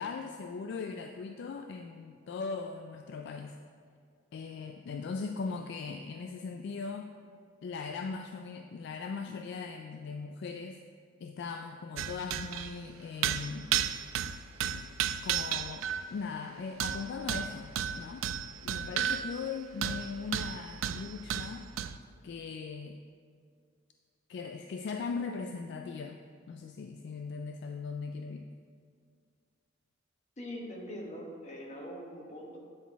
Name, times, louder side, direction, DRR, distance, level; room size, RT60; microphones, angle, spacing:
voice 1, 0.0-3.6 4.3-7.1 7.6-10.8 11.2-13.7 14.7-14.9 15.2-18.3 18.6-21.7 22.2-23.0 24.3-26.2 26.5-28.5, left 4 dB, 60° left, 5 dB, 0.3 m, -39 dB
sound 1, 12.0-12.7 13.2-16.1 16.8-19.6 19.8-22.0, right 9 dB, 90° right, 0.3 m, -33 dB
voice 2, 30.4-32.6, equal, 35° left, -1 dB, 1.2 m, -42 dB
9.4 x 4.1 x 4.6 m, 2.1 s
head